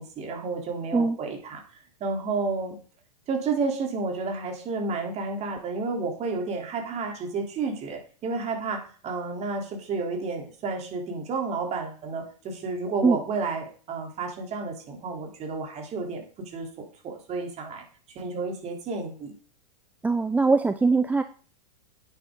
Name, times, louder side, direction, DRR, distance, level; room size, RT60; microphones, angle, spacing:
voice 1, 0.0-1.6 2.0-2.8 3.3-16.7 17.0-17.8 18.2-19.3, right 4 dB, 30° right, 2 dB, 3.6 m, -31 dB
voice 2, 20.0-21.2, right 4 dB, 5° right, 10 dB, 0.4 m, -21 dB
11.0 x 9.2 x 3.9 m, 0.41 s
hypercardioid pair, 115°, 21 cm